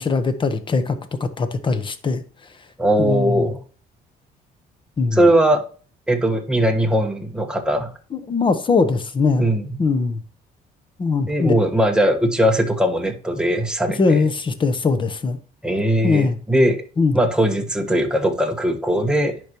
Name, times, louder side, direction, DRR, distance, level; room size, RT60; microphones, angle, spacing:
voice 1, 0.0-2.2 3.0-3.5 5.0-5.2 8.1-9.5 9.8-10.2 11.0-11.5 14.0-15.4 16.0-16.4 17.0-17.2, left 4 dB, 30° left, 1.0 m, -21 dB
voice 2, 2.8-3.6 5.1-5.6 6.1-7.9 9.4-9.8 11.3-14.2 15.6-16.8 17.1-19.4, right 1 dB, 5° right, 1.2 m, -19 dB
10.5 x 5.1 x 3.0 m
cardioid pair, 110°, 17 cm